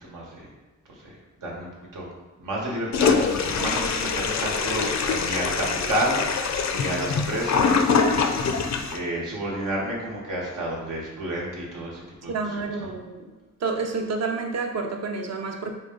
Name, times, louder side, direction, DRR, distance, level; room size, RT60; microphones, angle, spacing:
voice 1, 0.0-0.5 0.9-2.1 2.4-12.9, right 1 dB, 90° right, -3 dB, 1.2 m, -31 dB
Toilet flush, 2.9-9.0, left 5 dB, 60° left, 0.5 m, -24 dB
voice 2, 12.3-13.3 13.6-15.7, right 4 dB, 55° right, 3 dB, 0.6 m, -29 dB
4.8 x 2.3 x 3.7 m, 1.2 s
wide cardioid pair, 95°, 31 cm